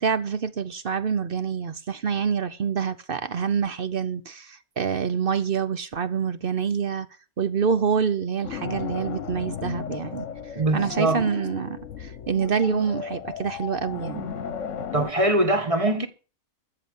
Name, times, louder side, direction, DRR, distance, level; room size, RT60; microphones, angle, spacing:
voice 1, 0.0-7.1 7.4-10.3 10.5-14.3, right 6 dB, 45° right, 0.8 m, -26 dB
sound 1, 8.4-15.1, left 7 dB, 55° left, 1.3 m, -35 dB
voice 2, 10.5-11.2 14.9-16.1, right 2 dB, 25° right, 1.4 m, -22 dB
14.0 x 5.9 x 9.4 m
omnidirectional pair, 1.6 m